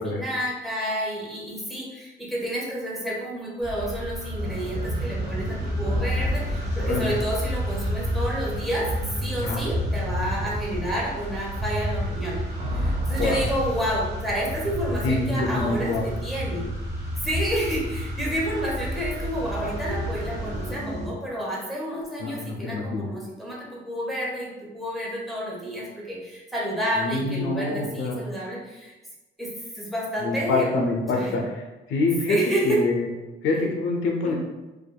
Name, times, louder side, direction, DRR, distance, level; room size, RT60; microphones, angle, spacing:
voice 1, 0.0-8.9 9.2-16.7 17.2-29.0 29.4-30.8 31.1-31.4 32.3-32.8 34.2-34.4, equal, ahead, -6 dB, 0.8 m, -30 dB
sound 1, 3.6-20.8, right 1 dB, 35° left, 1.1 m, -34 dB
sound 2, 4.4-21.1, equal, 35° right, 0.6 m, -31 dB
voice 2, 6.8-7.1 9.4-9.6 13.2-13.4 15.0-16.0 22.2-23.1 27.0-28.3 30.2-31.6 31.9-32.4 32.6-33.1 33.4-34.3, left 3 dB, 80° left, 1 dB, 0.5 m, -26 dB
2.6 x 2.3 x 2.2 m, 1.1 s
cardioid pair, 90°, 20 cm